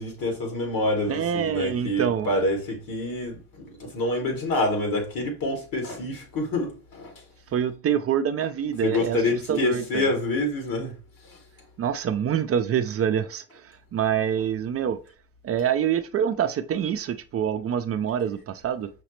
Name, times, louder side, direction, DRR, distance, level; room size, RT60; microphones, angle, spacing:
voice 1, 0.0-7.1 8.8-11.0 11.2-11.4, left 2 dB, 75° left, 1.9 m, -27 dB
voice 2, 1.1-2.4 7.5-9.2 9.5-10.1 11.8-15.0 15.4-18.9, right 8 dB, 40° right, 0.4 m, -26 dB
5.8 x 2.0 x 3.0 m
cardioid pair, 90°, 35 cm